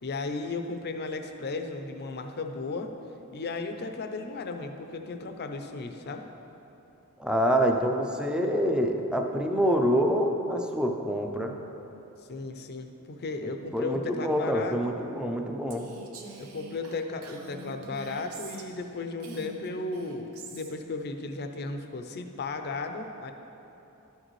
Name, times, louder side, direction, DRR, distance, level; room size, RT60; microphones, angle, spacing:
voice 1, 0.0-2.9 3.3-6.3 12.3-14.8 16.4-23.3, left 3 dB, 50° left, 6 dB, 0.5 m, -35 dB
voice 2, 7.2-11.6 13.7-15.9, equal, 5° right, 3 dB, 0.5 m, -26 dB
Female speech woman speaking, 15.7-18.9 19.2-20.7, right 3 dB, 70° right, 0.8 m, -45 dB
11.0 x 6.5 x 3.1 m, 3.0 s
head